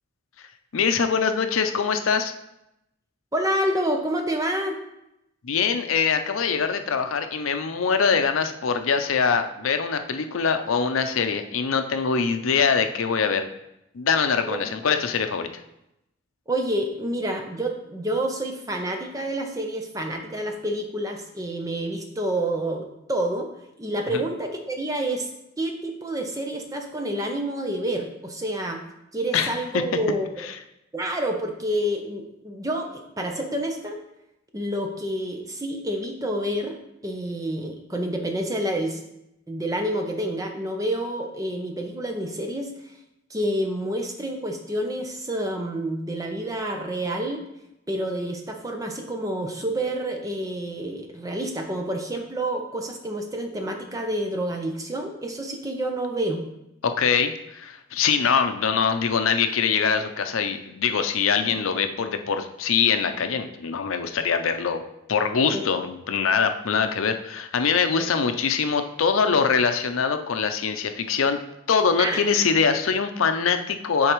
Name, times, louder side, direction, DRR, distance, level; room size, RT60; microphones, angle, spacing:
voice 1, 0.7-2.3 5.4-13.4 13.9-15.5 29.3-29.6 56.8-64.8 65.1-71.4 71.7-74.1, left 6 dB, 85° left, 8 dB, 0.5 m, -23 dB
voice 2, 3.3-4.8 14.4-14.6 16.5-23.5 23.8-25.3 25.6-28.8 29.1-30.5 30.9-34.0 34.5-39.0 39.5-42.7 43.3-47.4 47.9-56.4 65.5-65.6 72.0-72.2, right 1 dB, 15° right, 3 dB, 0.7 m, -28 dB
9.8 x 3.9 x 3.1 m, 0.86 s
head